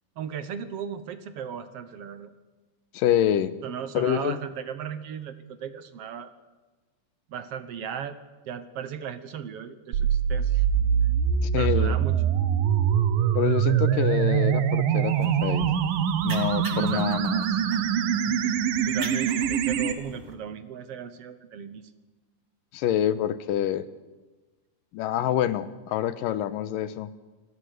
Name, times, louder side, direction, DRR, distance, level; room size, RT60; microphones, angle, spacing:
voice 1, 0.2-2.3 3.6-6.3 7.3-8.2 8.5-10.6 11.6-12.2 16.7-17.3 17.7-17.8 18.3-18.6 18.9-21.9, right 8 dB, 60° right, 11 dB, 1.6 m, -36 dB
voice 2, 2.9-3.5 3.9-4.4 11.4-12.0 13.3-15.7 16.2-17.4 22.7-23.9 24.9-27.1, left 11 dB, 80° left, 14 dB, 2.6 m, -26 dB
sound 1, 9.9-19.9, right 8 dB, 80° right, 2.9 m, -24 dB
sound 2, 15.1-20.3, right 2 dB, 30° right, 2.4 m, -42 dB
28.0 x 19.5 x 6.6 m, 1.2 s
omnidirectional pair, 3.9 m